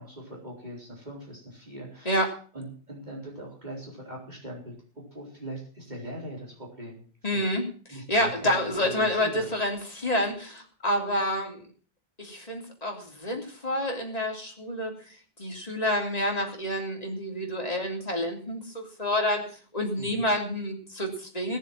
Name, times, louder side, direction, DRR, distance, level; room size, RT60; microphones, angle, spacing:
voice 1, 0.0-2.3 2.5-7.0 7.3-7.5 7.9-9.5 20.0-20.3, equal, 45° right, -2 dB, 4.3 m, -41 dB
voice 2, 7.2-11.7 12.2-19.4 19.7-21.6, left 1 dB, 35° left, 1 dB, 3.4 m, -28 dB
18.0 x 7.1 x 7.4 m, 0.42 s
omnidirectional pair, 1.1 m